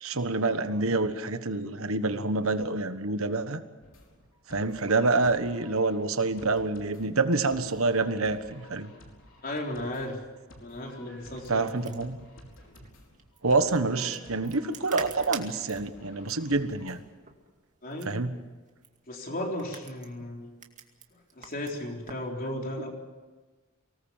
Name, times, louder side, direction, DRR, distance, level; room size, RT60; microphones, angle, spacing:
voice 1, 0.0-3.6 4.5-8.9 11.5-12.2 13.4-17.0 18.0-18.3, right 3 dB, 70° right, 10 dB, 1.4 m, -27 dB
sound 1, 3.8-17.0, left 1 dB, 60° left, 4.7 m, -52 dB
voice 2, 9.4-10.2 10.6-11.9 17.8-18.2 19.1-20.5 21.4-22.9, left 1 dB, 40° left, 1 dB, 4.0 m, -35 dB
sound 2, 11.2-22.3, right 6 dB, 35° right, 2.2 m, -47 dB
24.5 x 19.0 x 7.3 m, 1.3 s
head